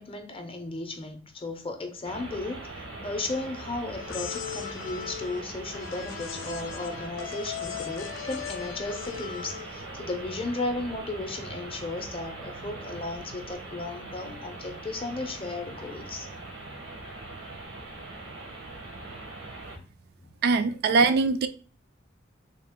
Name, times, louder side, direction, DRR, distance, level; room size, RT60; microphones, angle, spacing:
voice 1, 0.0-16.3 19.7-19.9 20.2-20.3 20.6-20.7, left 2 dB, 30° left, 0.6 m, -35 dB
sound 1, 2.0-19.8, right 2 dB, 85° right, 1.1 m, -41 dB
sound 2, 3.9-9.8, left 10 dB, 85° left, 0.4 m, -38 dB
voice 2, 20.4-21.5, right 4 dB, 55° right, 0.3 m, -22 dB
3.6 x 2.4 x 3.5 m
head